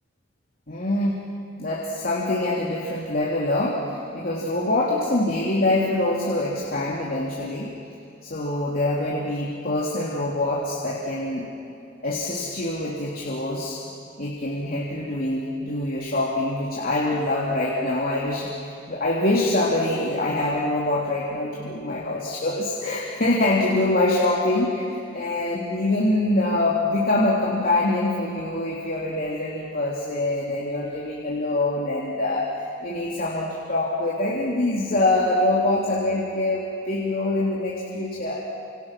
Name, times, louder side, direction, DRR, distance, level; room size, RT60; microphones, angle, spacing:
voice 1, 0.7-1.2 1.6-7.7 8.2-11.5 12.0-13.8 14.2-38.6, left 2 dB, 50° left, -4 dB, 3.2 m, -24 dB
29.0 x 28.0 x 6.1 m, 2.6 s
head